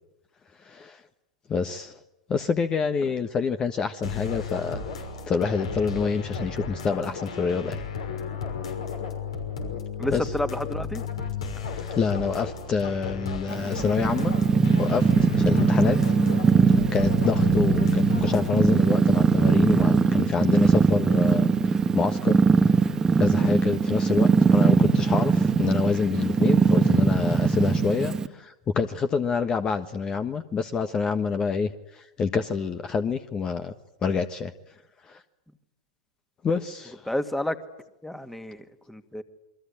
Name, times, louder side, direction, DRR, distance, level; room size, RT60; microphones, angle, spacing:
voice 1, 0.6-1.0 1.5-2.0 2.3-4.8 5.2-7.8 10.1-10.3 11.6-14.3 14.8-16.0 16.7-33.7 34.0-34.5 35.0-35.2 36.4-37.1, left 5 dB, 25° left, 9 dB, 1.4 m, -27 dB
sound 1, 4.0-18.8, left 6 dB, 75° left, 6.0 m, -34 dB
voice 2, 10.0-11.0 37.1-37.6 38.0-39.2, left 1 dB, 5° left, 10 dB, 2.2 m, -30 dB
Purr, 13.5-28.3, right 5 dB, 20° right, 1.5 m, -21 dB
28.5 x 23.0 x 8.7 m, 0.93 s
figure-of-eight pair, 95°, 3 cm